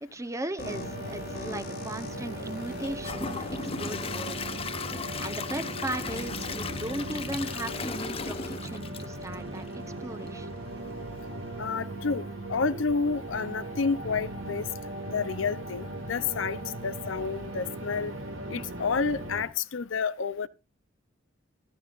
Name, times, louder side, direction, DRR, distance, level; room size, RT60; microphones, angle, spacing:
voice 1, 0.0-4.4 5.2-9.7 10.0-10.5, right 1 dB, 15° right, 0.9 m, -37 dB
sound 1, 0.6-4.3 5.1-5.2 6.1-8.6, left 2 dB, 50° left, 1.8 m, -43 dB
sound 2, 0.6-19.4, right 1 dB, 85° right, 2.5 m, -38 dB
Gurgling / Toilet flush / Trickle dribble, 2.8-9.9 10.3-10.4 10.8-10.9, left 5 dB, 30° left, 0.7 m, -37 dB
voice 2, 11.6-14.7 15.1-18.1 18.5-20.5, left 5 dB, 75° left, 0.6 m, -30 dB
16.0 x 13.5 x 2.5 m
head